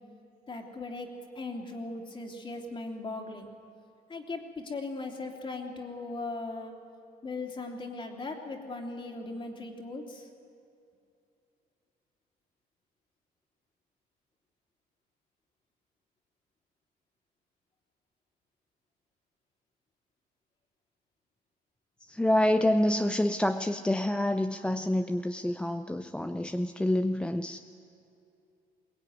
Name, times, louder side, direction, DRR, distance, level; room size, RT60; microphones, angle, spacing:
voice 1, 0.5-1.1 1.4-3.5 4.1-6.7 7.2-10.2, left 3 dB, 30° left, 2 dB, 3.0 m, -38 dB
voice 2, 22.0-27.6, left 1 dB, 5° left, 7 dB, 0.6 m, -27 dB
22.5 x 19.0 x 9.4 m, 2.6 s
cardioid pair, 110°, 17 cm